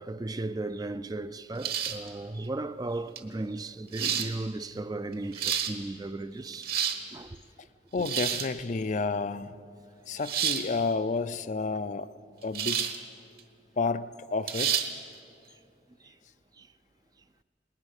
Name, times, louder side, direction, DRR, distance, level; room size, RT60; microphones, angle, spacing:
voice 1, 0.0-6.8 7.1-7.4 16.0-16.1 16.6-16.7, right 2 dB, 20° right, 0.4 m, -36 dB
sound 1, 1.6-2.1 3.2-3.3 3.9-4.3 5.1-5.7 6.5-7.0 8.0-8.5 10.2-10.7 12.6-13.0 13.4-13.5 14.5-14.9, right 8 dB, 60° right, 1.4 m, -29 dB
voice 2, 7.9-9.5 10.1-12.1 12.4-12.9 13.8-14.8, left 4 dB, 45° left, 0.5 m, -30 dB
20.0 x 20.0 x 6.5 m
head